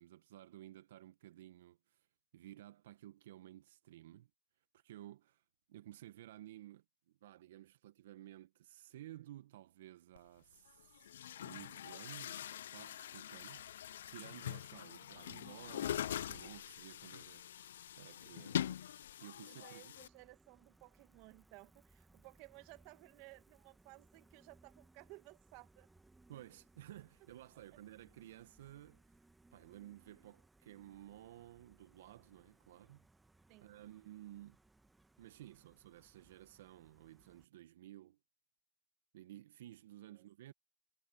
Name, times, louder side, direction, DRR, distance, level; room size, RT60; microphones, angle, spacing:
voice 1, 0.0-2.1 2.3-4.3 4.7-5.4 5.7-6.8 7.2-12.4 12.7-13.7 14.1-17.7 18.0-18.8 19.2-19.9 26.3-29.0 29.5-33.1 33.6-34.6 35.2-38.2 39.1-40.5, right 14 dB, 65° right, 1.1 m, -55 dB
Chatter / Gurgling / Tap, 10.2-10.3 11.0-20.1, left 10 dB, 70° left, 0.5 m, -43 dB
voice 2, 19.5-25.9 33.5-33.7 40.1-40.3, right 25 dB, 45° right, 1.5 m, -58 dB
Gull seagull, 20.0-37.4, right 2 dB, 5° right, 1.3 m, -68 dB
hypercardioid pair, 125°, 0 cm